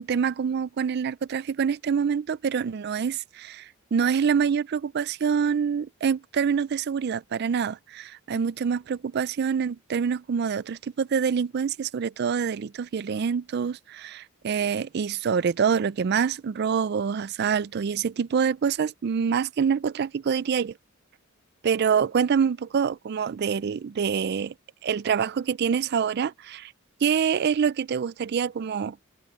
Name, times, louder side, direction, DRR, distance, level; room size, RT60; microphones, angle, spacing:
voice 1, 0.0-20.7 21.6-24.5 24.8-26.7 27.0-29.0, right 6 dB, 50° right, 0.4 m, -26 dB
head